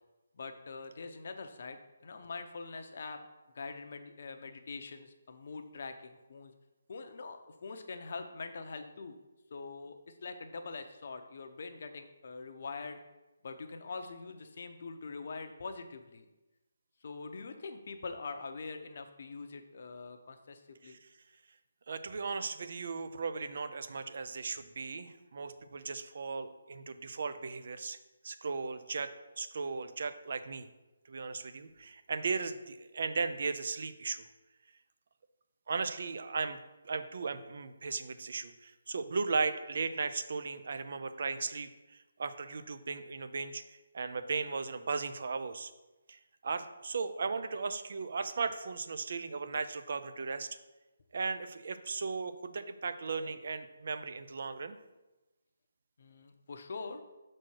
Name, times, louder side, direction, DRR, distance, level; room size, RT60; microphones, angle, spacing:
voice 1, 0.3-3.2 3.5-6.5 6.9-9.2 9.5-13.0 13.4-16.2 17.0-21.0 56.0-57.0, left 4 dB, 45° left, 6 dB, 0.8 m, -44 dB
voice 2, 21.9-28.0 28.2-29.1 29.4-30.7 31.1-34.3 35.7-36.6 36.8-41.7 42.2-43.6 43.9-45.7 46.1-50.5 51.1-54.8, right 4 dB, 50° right, 10 dB, 0.5 m, -36 dB
6.2 x 4.3 x 6.3 m, 1.1 s
hypercardioid pair, 170°, 0 cm